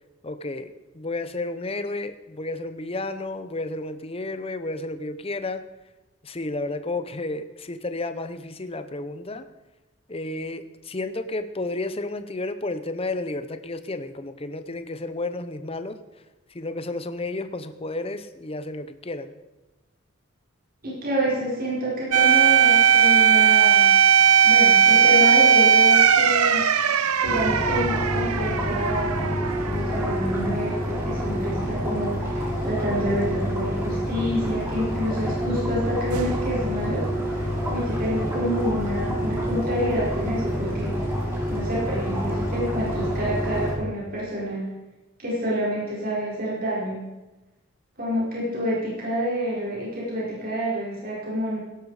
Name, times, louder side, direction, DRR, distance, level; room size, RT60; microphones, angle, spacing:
voice 1, 0.2-0.7 0.9-5.6 6.2-9.4 10.1-16.0 16.5-19.4, left 2 dB, 25° left, 10 dB, 0.8 m, -32 dB
voice 2, 20.8-23.9 24.4-26.6 27.2-41.0 41.5-44.7 45.2-47.0 48.0-51.6, equal, 40° right, -6 dB, 4.9 m, -28 dB
sound 1, 22.1-30.8 31.1-31.2 36.1-36.7, right 7 dB, 90° right, 0.9 m, -18 dB
sound 2, 27.2-43.7, equal, 10° right, 3.7 m, -27 dB
17.0 x 11.5 x 4.9 m, 1.1 s
head